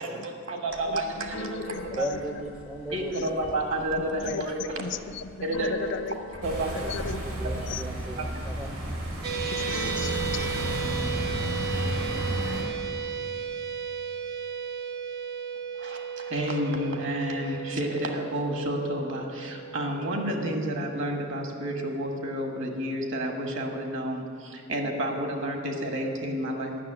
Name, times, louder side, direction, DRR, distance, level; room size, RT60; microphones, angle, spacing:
voice 1, 0.0-2.1 2.9-4.8 5.4-5.8 6.4-6.7 15.8-26.8, right 1 dB, 65° right, 3 dB, 1.5 m, -30 dB
Keyboard (musical), 0.7-12.8, left 1 dB, 90° left, 1.3 m, -43 dB
voice 2, 0.9-2.4 3.1-3.3 4.1-4.4 4.8-6.2 6.4-7.8 9.3-10.5, left 5 dB, 60° left, 11 dB, 0.4 m, -37 dB
voice 3, 1.9-3.1 6.8-6.9 7.4-10.2, right 1 dB, 5° right, 5 dB, 0.4 m, -37 dB
sound 1, 6.4-12.6, right 1 dB, 85° right, 2.9 m, -32 dB
sound 2, 9.2-21.6, right 6 dB, 50° right, 0.8 m, -35 dB
9.5 x 6.6 x 8.6 m, 2.4 s
head